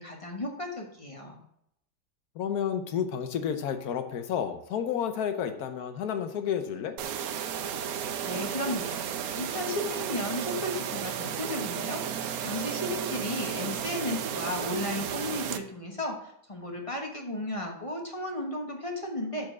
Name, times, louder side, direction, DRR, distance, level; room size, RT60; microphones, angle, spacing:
voice 1, 0.0-1.4 8.0-19.5, left 1 dB, 25° left, 1 dB, 0.9 m, -34 dB
voice 2, 2.4-6.9, left 8 dB, 65° left, 8 dB, 1.2 m, -31 dB
sound 1, 7.0-15.6, right 8 dB, 65° right, 1.0 m, -33 dB
6.9 x 4.8 x 6.1 m, 0.75 s
omnidirectional pair, 1.9 m